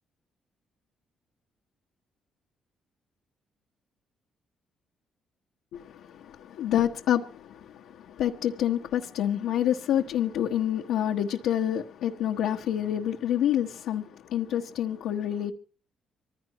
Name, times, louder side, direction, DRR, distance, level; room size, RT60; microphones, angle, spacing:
voice 1, 5.7-15.5, left 10 dB, 90° left, 1.2 m, -28 dB
24.5 x 15.5 x 3.0 m
cardioid pair, 90°, 0 cm